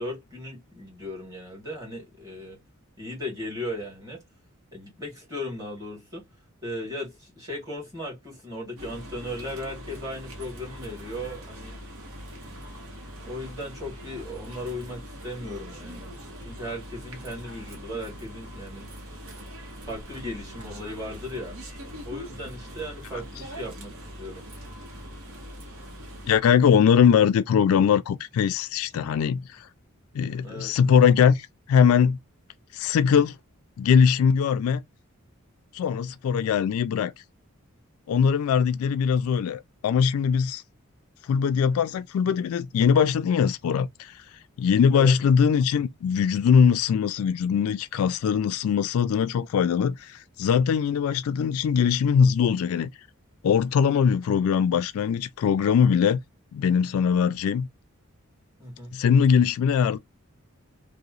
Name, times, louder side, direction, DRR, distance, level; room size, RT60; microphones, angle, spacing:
voice 1, 0.0-2.6 3.0-4.2 4.7-6.3 6.6-11.8 12.3-12.8 13.2-16.1 16.4-18.9 19.9-21.6 22.0-24.4 30.4-30.8 44.9-45.2 58.6-58.9, left 1 dB, 15° right, 1.5 m, -37 dB
sound 1, 8.8-26.4, equal, 75° right, 0.8 m, -42 dB
voice 2, 26.3-29.6 30.1-32.2 32.7-33.4 33.8-34.8 35.7-37.1 38.1-40.6 41.3-44.1 44.6-52.9 53.4-56.2 56.5-57.7 58.9-60.0, left 7 dB, 80° left, 0.3 m, -21 dB
2.8 x 2.0 x 2.4 m
head